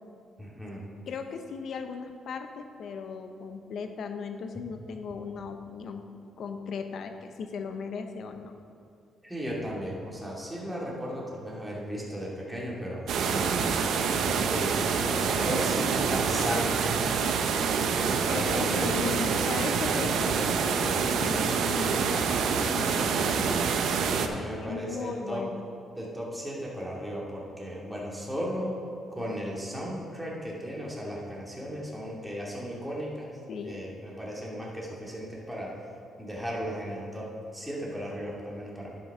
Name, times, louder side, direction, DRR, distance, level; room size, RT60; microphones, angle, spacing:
voice 1, 0.4-0.8 9.2-13.8 14.3-16.8 18.3-19.1 24.1-25.4 26.0-28.8 29.1-33.4 33.6-35.7 36.2-37.3 37.5-39.0, equal, 5° right, -5 dB, 2.4 m, -35 dB
voice 2, 1.1-6.1 6.4-8.5 18.3-22.3 22.6-24.0 24.6-25.6 33.5-33.8, left 5 dB, 65° left, 6 dB, 0.8 m, -37 dB
sound 1, 13.1-24.3, right 6 dB, 75° right, 0.7 m, -26 dB
11.0 x 6.2 x 4.9 m, 2.5 s
cardioid pair, 90°, 0 cm